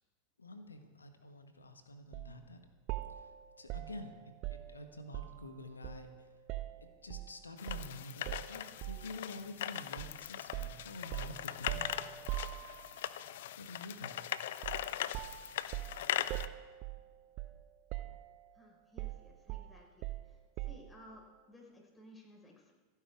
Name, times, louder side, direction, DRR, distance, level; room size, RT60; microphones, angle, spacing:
voice 1, 0.4-2.6 3.2-3.3 3.6-4.1 4.5-6.3 7.0-12.0 13.6-14.2, left 2 dB, 85° left, 7 dB, 1.5 m, -48 dB
sound 1, 2.1-2.3 2.9-5.5 5.8-7.3 7.7-7.9 8.3-9.2 10.0-10.2 10.5-13.1 14.6-14.9 15.1-17.6 17.9-18.5 19.0-21.0, right 17 dB, 45° right, 0.7 m, -42 dB
sound 2, 7.6-16.5, left 12 dB, 60° left, 0.6 m, -40 dB
voice 2, 18.5-20.1 20.6-22.7, left 1 dB, 15° left, -1 dB, 5.0 m, -57 dB
27.5 x 9.9 x 3.6 m, 1.3 s
figure-of-eight pair, 90°, 0 cm